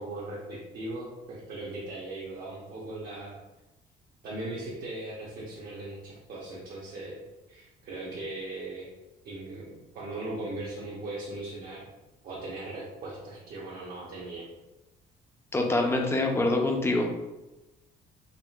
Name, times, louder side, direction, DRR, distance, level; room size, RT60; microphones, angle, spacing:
voice 1, 0.0-3.3 4.2-7.2 7.5-8.9 9.2-11.8 12.2-14.5, right 2 dB, 60° right, -6 dB, 0.8 m, -38 dB
voice 2, 15.5-17.1, left 2 dB, 15° left, 2 dB, 0.5 m, -25 dB
3.6 x 2.4 x 2.3 m, 1.0 s
cardioid pair, 110°, 17 cm